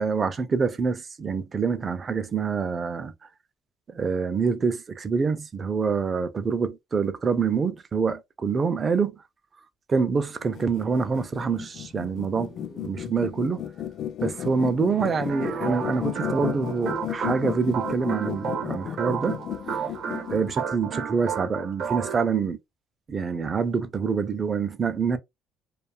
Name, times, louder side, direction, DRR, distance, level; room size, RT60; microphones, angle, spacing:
voice 1, 0.0-3.1 3.9-9.1 9.9-13.6 14.2-19.4 19.7-20.0 20.3-22.6 23.1-25.2, right 5 dB, 30° right, 0.4 m, -26 dB
sound 1, 10.4-20.5, left 10 dB, 55° left, 0.3 m, -34 dB
sound 2, 15.3-22.3, right 7 dB, 60° right, 0.7 m, -32 dB
2.6 x 2.3 x 2.3 m
cardioid pair, 115°, 0 cm